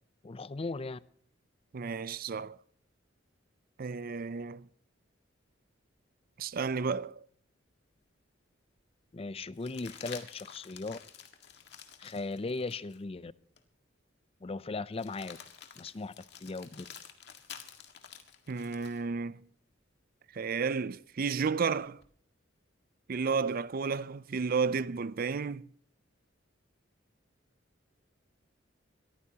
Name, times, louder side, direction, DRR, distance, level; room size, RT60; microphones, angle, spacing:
voice 1, 0.2-1.0 9.1-11.0 12.0-13.3 14.4-15.4 15.8-16.1 16.4-16.9, left 3 dB, 30° left, 0.5 m, -37 dB
voice 2, 1.7-2.6 3.8-4.7 6.4-7.3 18.5-19.5 20.3-22.0 23.1-25.7, right 5 dB, 50° right, 0.5 m, -32 dB
sound 1, 8.0-8.1 9.5-13.0 13.6-13.7 14.9-19.0 21.2-22.1, left 8 dB, 60° left, 1.8 m, -50 dB
22.5 x 14.0 x 2.9 m
head